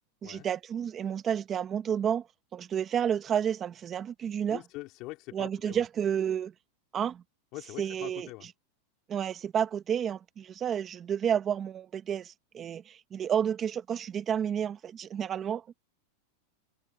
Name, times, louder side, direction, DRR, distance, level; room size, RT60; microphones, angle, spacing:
voice 1, 0.2-2.3 2.5-4.6 5.3-6.5 6.9-7.2 7.8-8.3 9.1-15.6, right 8 dB, 25° right, 1.3 m, -30 dB
voice 2, 4.5-5.8 7.5-8.5, left 21 dB, 45° left, 4.9 m, -43 dB
supercardioid pair, 135°, 0 cm